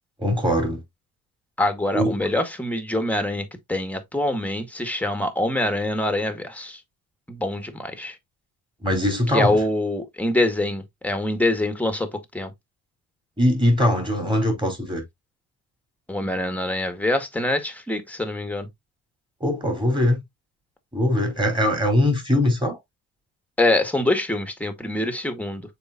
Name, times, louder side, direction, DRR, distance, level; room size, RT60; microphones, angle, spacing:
voice 1, 0.2-0.8 1.9-2.2 8.8-9.6 13.4-15.0 19.4-20.2 20.9-22.8, left 1 dB, 15° right, 4.4 m, -21 dB
voice 2, 1.6-6.8 7.3-8.2 9.3-12.5 16.1-18.7 23.6-25.6, left 1 dB, 5° left, 1.9 m, -25 dB
7.0 x 4.9 x 2.7 m
cardioid pair, 100°, 36 cm